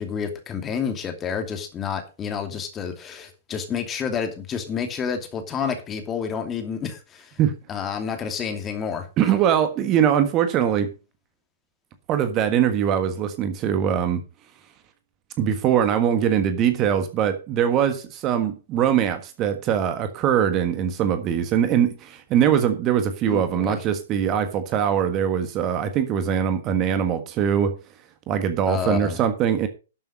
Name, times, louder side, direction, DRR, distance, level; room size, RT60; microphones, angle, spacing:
voice 1, 0.0-7.4 7.7-9.1 23.2-23.8 28.7-29.2, left 7 dB, 20° left, 6 dB, 2.6 m, -29 dB
voice 2, 9.2-10.9 12.1-14.2 15.4-27.7 28.3-29.7, right 9 dB, 30° right, 9 dB, 1.5 m, -22 dB
12.0 x 7.3 x 5.2 m, 0.32 s
figure-of-eight pair, 115°, 0 cm